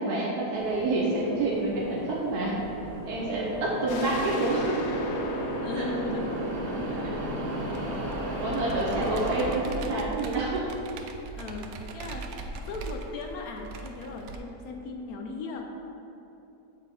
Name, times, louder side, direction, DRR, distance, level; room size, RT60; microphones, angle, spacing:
voice 1, 0.0-2.6 3.1-4.8 5.8-5.9 8.4-10.7, right 2 dB, 70° right, -4 dB, 1.3 m, -28 dB
sound 1, 0.5-9.5, equal, 35° right, 1.3 m, -35 dB
sound 2, 3.9-9.4, right 1 dB, 90° left, 0.6 m, -34 dB
voice 2, 5.6-7.2 7.5-7.7 8.3-8.5 11.4-12.3 12.6-15.9, left 3 dB, 70° left, 3 dB, 1.1 m, -38 dB
Computer keyboard, 7.6-14.4, right 4 dB, 90° right, 0.6 m, -40 dB
7.8 x 4.3 x 4.3 m, 2.9 s
omnidirectional pair, 1.8 m